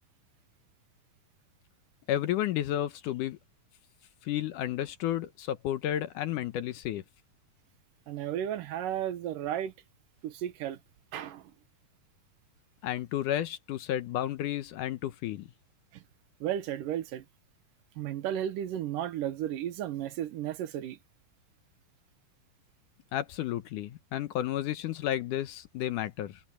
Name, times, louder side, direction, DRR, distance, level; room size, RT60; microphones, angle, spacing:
voice 1, 2.1-3.4 4.3-7.0 12.8-15.5 23.1-26.4, left 12 dB, 75° left, 2.3 m, -32 dB
voice 2, 8.1-9.7 10.2-10.8 11.1-11.5 15.9-16.0 16.4-17.2 18.0-21.0, right 11 dB, 75° right, 2.6 m, -34 dB
omnidirectional pair, 4.0 m